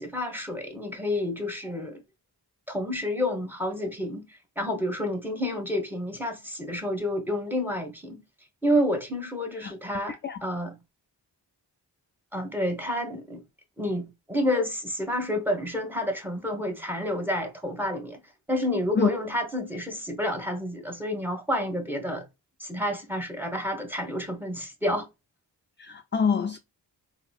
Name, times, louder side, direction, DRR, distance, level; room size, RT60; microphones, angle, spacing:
voice 1, 0.0-2.0 2.7-4.3 4.6-8.2 8.6-10.7 12.3-13.4 13.8-18.2 18.5-22.2 22.6-25.1, left 1 dB, 5° right, 1.2 m, -29 dB
voice 2, 10.1-10.4 19.0-19.1 25.8-26.6, left 5 dB, 30° left, 0.3 m, -26 dB
3.7 x 2.7 x 2.3 m
cardioid pair, 50°, 43 cm